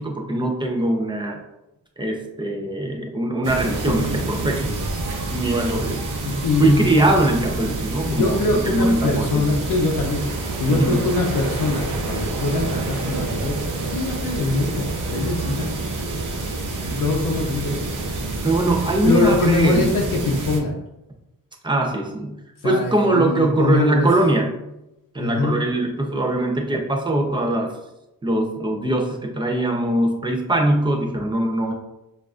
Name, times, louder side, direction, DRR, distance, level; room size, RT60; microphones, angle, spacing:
voice 1, 0.0-1.4 2.0-4.7 5.3-6.0 6.6-9.4 10.7-11.0 18.4-19.9 21.6-24.6 25.1-27.7 28.2-31.7, right 1 dB, 15° right, 1 dB, 0.6 m, -21 dB
sound 1, 3.4-20.6, right 2 dB, 60° right, 0.8 m, -27 dB
voice 2, 6.2-6.9 7.6-7.7 8.1-10.2 10.6-15.7 16.8-17.8 19.0-20.8 22.6-24.1 25.2-25.6, left 2 dB, 65° left, 0 dB, 0.7 m, -23 dB
7.1 x 2.5 x 2.4 m, 0.92 s
wide cardioid pair, 155°, 35 cm